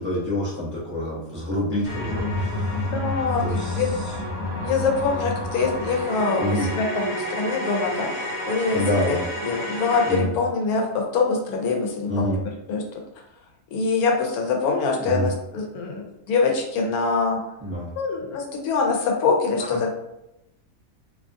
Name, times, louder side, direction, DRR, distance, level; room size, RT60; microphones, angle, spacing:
voice 1, 0.0-2.7 3.4-4.2 6.4-6.7 8.7-9.2 10.1-10.3 12.1-12.4 15.0-15.3 17.6-17.9 19.6-19.8, equal, 20° right, -8 dB, 0.3 m, -27 dB
sound 1, 1.8-10.2, left 1 dB, 55° left, 1.0 m, -29 dB
voice 2, 2.9-3.4 3.8-3.9 4.6-9.2 9.4-12.4 12.7-12.8 13.7-17.4 18.0-20.0, left 4 dB, 85° left, 2 dB, 1.1 m, -24 dB
2.7 x 2.3 x 2.5 m, 0.86 s
omnidirectional pair, 1.5 m